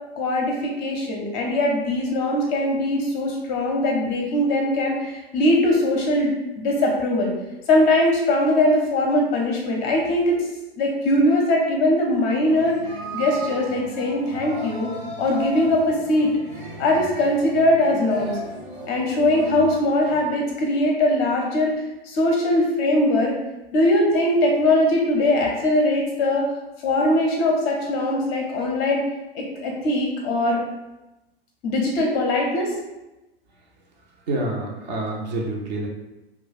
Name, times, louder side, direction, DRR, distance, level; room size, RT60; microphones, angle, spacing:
voice 1, 0.2-7.3 7.7-10.4 10.8-12.8 13.1-14.9 15.2-16.3 16.8-18.4 18.9-21.7 22.0-23.3 23.7-26.4 26.8-29.0 29.3-30.6 31.6-32.7, left 1 dB, 30° left, -1 dB, 0.6 m, -21 dB
sound 1, 12.5-20.3, right 2 dB, 75° right, 1.3 m, -35 dB
voice 2, 34.3-35.9, right 2 dB, 40° right, 0 dB, 0.6 m, -27 dB
2.3 x 2.2 x 3.9 m, 0.99 s
figure-of-eight pair, 100°, 31 cm